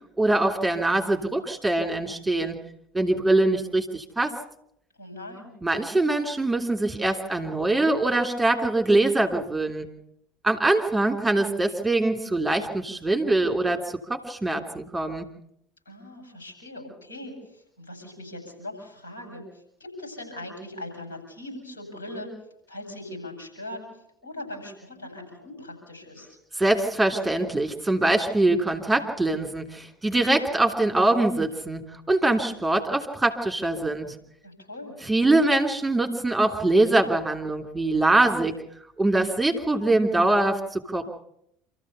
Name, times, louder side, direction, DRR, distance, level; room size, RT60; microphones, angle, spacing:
voice 1, 0.2-2.6 2.9-4.3 5.6-9.9 10.4-13.8 14.1-15.3 26.6-34.1 35.1-38.6 39.0-41.1, right 2 dB, 10° right, 3 dB, 3.2 m, -23 dB
voice 2, 5.0-5.5 15.9-22.3 22.7-26.4 34.4-35.0, left 1 dB, 80° left, 1 dB, 7.8 m, -40 dB
27.5 x 14.5 x 6.9 m, 0.74 s
figure-of-eight pair, 70°, 0 cm